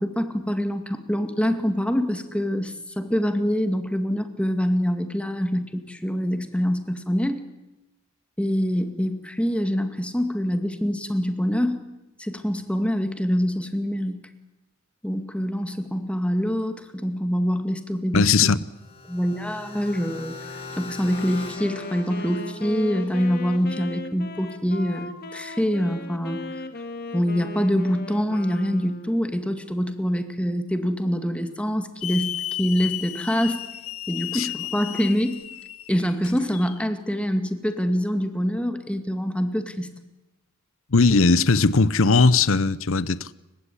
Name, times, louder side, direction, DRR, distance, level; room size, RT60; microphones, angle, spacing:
voice 1, 0.0-7.4 8.4-11.8 12.2-14.3 15.0-18.3 19.1-26.4 27.1-33.6 34.1-35.4 35.9-39.9, equal, 5° left, 2.1 m, -25 dB
voice 2, 18.1-18.6 34.3-34.5 40.9-43.3, left 4 dB, 65° left, 0.8 m, -18 dB
sound 1, 18.6-23.6, left 3 dB, 25° left, 4.6 m, -41 dB
Wind instrument woodwind instrument, 21.0-29.3, left 2 dB, 50° left, 2.0 m, -37 dB
Hiss / Alarm, 32.0-36.8, left 13 dB, 90° left, 1.1 m, -34 dB
29.5 x 16.5 x 9.9 m
head